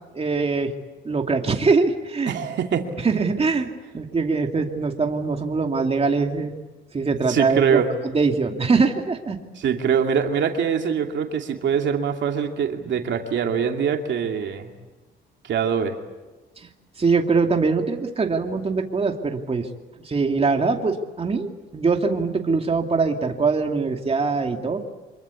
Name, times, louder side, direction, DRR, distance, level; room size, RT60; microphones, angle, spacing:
voice 1, 0.1-0.7 1.0-2.4 3.0-6.5 6.9-9.4 16.6-16.7 17.0-19.7 20.0-24.8, right 4 dB, 30° right, 3 dB, 2.6 m, -23 dB
voice 2, 2.3-2.9 7.3-7.9 9.6-14.7 15.4-16.0, right 7 dB, 65° right, 4 dB, 2.6 m, -23 dB
26.0 x 22.5 x 8.4 m, 1.2 s
cardioid pair, 90°, 20 cm